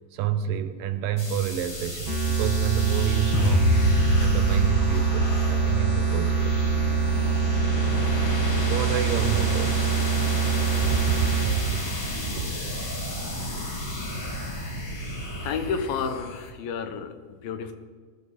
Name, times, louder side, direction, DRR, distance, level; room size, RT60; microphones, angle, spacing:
voice 1, 0.1-3.8 4.2-6.6 8.6-9.9 10.9-11.8, right 9 dB, 75° right, 10 dB, 2.3 m, -29 dB
sound 1, 1.2-16.5, left 1 dB, 40° left, 2.3 m, -33 dB
sound 2, 2.1-11.5, right 7 dB, 25° right, 1.3 m, -25 dB
sound 3, 3.3-9.5, left 2 dB, 55° left, 1.8 m, -27 dB
voice 2, 15.4-17.7, left 6 dB, 80° left, 8 dB, 2.8 m, -31 dB
19.5 x 12.0 x 4.1 m, 1.5 s
omnidirectional pair, 4.1 m